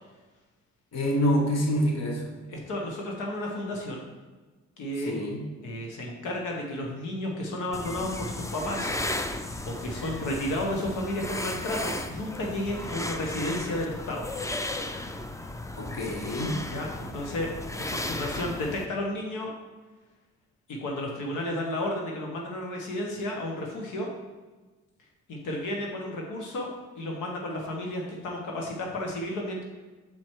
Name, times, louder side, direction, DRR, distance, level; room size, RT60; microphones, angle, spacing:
voice 1, 0.9-2.3 5.1-5.5 15.8-16.6, equal, 60° left, 1 dB, 1.3 m, -26 dB
voice 2, 2.5-4.0 4.8-5.2 5.6-8.9 9.6-14.3 16.7-17.5 17.9-19.5 20.7-24.1 25.3-26.7 27.0-29.6, left 1 dB, 90° left, 0 dB, 1.3 m, -32 dB
sound 1, 7.7-18.9, left 1 dB, 10° left, 0.5 m, -35 dB
6.3 x 4.4 x 4.6 m, 1.3 s
cardioid pair, 90°, 30 cm